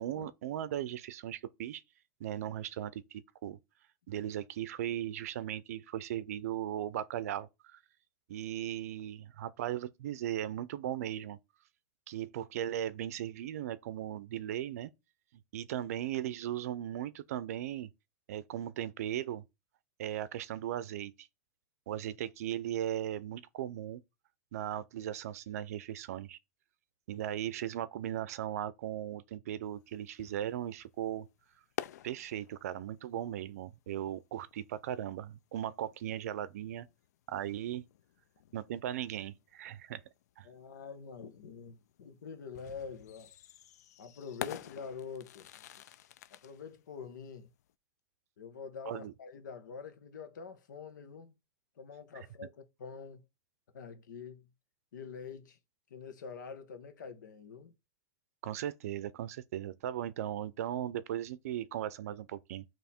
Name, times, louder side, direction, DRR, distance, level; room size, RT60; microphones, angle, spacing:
voice 1, 0.0-1.8 2.2-3.6 4.1-7.8 8.3-11.4 12.1-14.9 15.5-17.9 18.3-19.4 20.0-21.3 21.9-24.0 24.5-26.4 27.1-31.3 32.0-36.9 37.3-37.9 38.5-40.0 40.4-40.5 48.9-49.1 58.4-62.6, right 11 dB, 55° right, 0.5 m, -37 dB
sound 1, 29.7-47.7, left 11 dB, 60° left, 0.4 m, -49 dB
voice 2, 40.4-43.3 44.0-45.6 46.3-47.5 48.4-51.3 51.8-53.2 53.7-54.5 54.9-55.6 55.9-57.7, left 6 dB, 90° left, 1.3 m, -46 dB
9.1 x 3.1 x 4.3 m
supercardioid pair, 175°, 10 cm